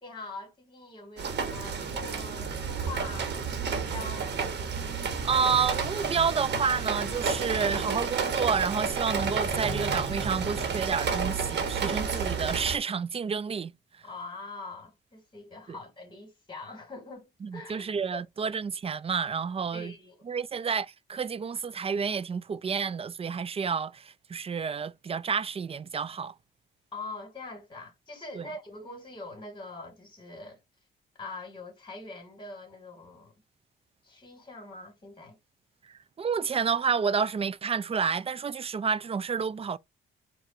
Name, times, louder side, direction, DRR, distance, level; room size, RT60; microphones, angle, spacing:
voice 1, 0.0-4.4 14.0-18.2 19.7-20.3 26.9-30.6 31.1-33.3 34.0-35.4, left 3 dB, 25° left, 2.5 m, -43 dB
sound 1, 1.2-12.8, right 5 dB, 60° right, 1.3 m, -31 dB
voice 2, 5.2-13.7 15.7-15.8 17.4-19.9 20.3-26.3 28.3-28.4 36.2-39.8, right 6 dB, 30° right, 0.4 m, -29 dB
4.7 x 2.6 x 4.2 m
cardioid pair, 90°, 20 cm